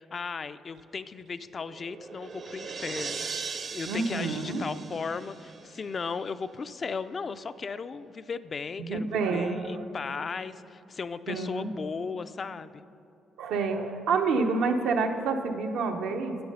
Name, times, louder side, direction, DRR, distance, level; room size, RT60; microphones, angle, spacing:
voice 1, 0.1-12.7, left 5 dB, 40° left, 12 dB, 0.3 m, -36 dB
sound 1, 1.5-6.1, right 5 dB, 50° right, 0.6 m, -39 dB
voice 2, 3.9-4.6 8.8-9.8 11.3-11.7 13.4-16.4, right 4 dB, 90° right, 4 dB, 0.8 m, -28 dB
9.3 x 8.7 x 5.5 m, 2.7 s
cardioid pair, 90°, 0 cm